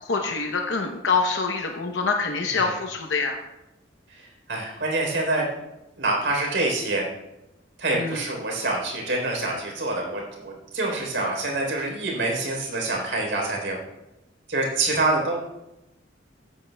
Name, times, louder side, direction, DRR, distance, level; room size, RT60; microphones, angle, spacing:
voice 1, 0.0-3.4 7.9-8.2, left 4 dB, 75° left, 3 dB, 0.8 m, -25 dB
voice 2, 4.5-5.5 6.0-7.1 7.8-13.8 14.5-15.4, right 2 dB, 70° right, 0 dB, 3.7 m, -26 dB
14.5 x 10.5 x 2.3 m, 0.94 s
head